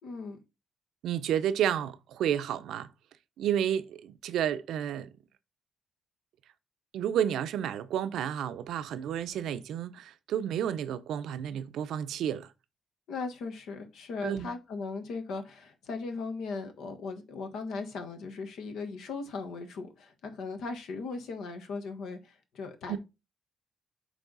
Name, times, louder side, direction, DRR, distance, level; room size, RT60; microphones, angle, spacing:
voice 1, 0.0-0.4 13.1-23.0, left 4 dB, 75° left, 1.3 m, -38 dB
voice 2, 1.0-2.9 3.4-5.1 6.9-12.5 14.2-14.5 22.9-23.0, right 10 dB, 80° right, 0.6 m, -31 dB
8.2 x 3.3 x 3.9 m
cardioid pair, 90°, 0 cm